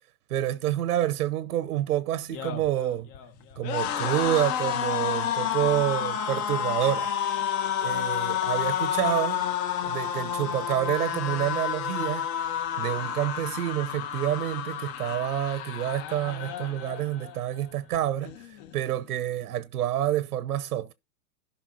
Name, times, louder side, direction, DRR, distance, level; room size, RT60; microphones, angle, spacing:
voice 1, 0.3-3.1 3.6-7.1 7.8-9.4 9.8-12.3 12.8-20.9, right 12 dB, 80° right, 1.0 m, -28 dB
sound 1, 2.2-17.4 17.7-18.0 18.2-19.0, left 9 dB, 45° left, 2.0 m, -30 dB
16.0 x 5.7 x 2.8 m
hypercardioid pair, 120°, 45 cm